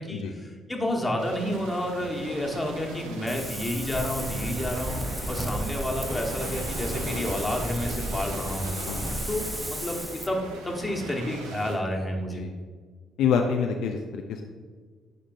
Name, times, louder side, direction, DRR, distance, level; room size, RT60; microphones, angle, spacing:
voice 1, 0.0-5.0 5.3-8.7 9.3-12.4, left 1 dB, 15° left, 1 dB, 1.3 m, -30 dB
sound 1, 1.2-11.8, right 2 dB, 75° right, 0.7 m, -39 dB
Wind, 3.3-10.3, equal, 5° right, 0.7 m, -33 dB
voice 2, 13.2-14.5, left 6 dB, 65° left, 3 dB, 0.4 m, -27 dB
10.5 x 5.1 x 2.6 m, 1.5 s
figure-of-eight pair, 45°, 0 cm